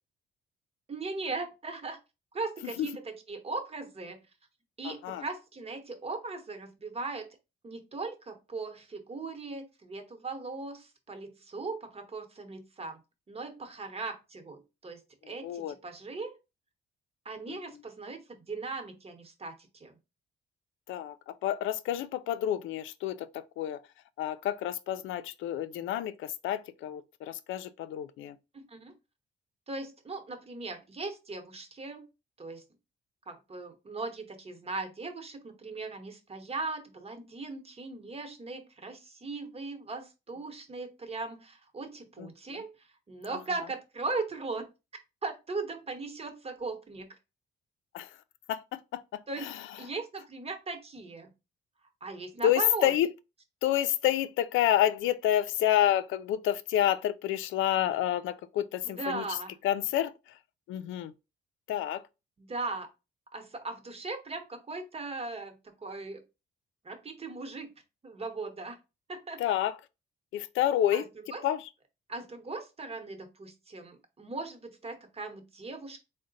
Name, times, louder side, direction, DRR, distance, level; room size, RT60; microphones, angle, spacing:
voice 1, 0.9-2.0 2.3-4.2 4.8-7.3 7.6-13.0 13.3-15.0 15.3-16.3 17.2-20.0 28.5-28.9 29.7-32.1 32.4-32.6 33.3-44.7 45.2-47.1 49.3-49.5 49.8-51.3 52.0-52.9 58.8-59.5 62.4-62.9 63.3-66.2 66.8-67.7 68.0-68.8 69.1-69.4 70.9-71.0 71.3-71.4 72.1-76.0, right 3 dB, 30° right, 1.0 m, -38 dB
voice 2, 4.8-5.2 15.2-15.7 17.5-17.8 20.9-23.8 24.2-28.4 42.2-42.6 43.3-43.4 47.9-48.2 48.5-49.9 52.4-53.1 53.6-59.4 59.6-60.4 60.7-61.1 61.7-62.1 69.4-69.8 70.3-71.1 71.4-71.7, left 11 dB, 80° left, 0.4 m, -29 dB
3.7 x 2.2 x 3.9 m
cardioid pair, 90°, 20 cm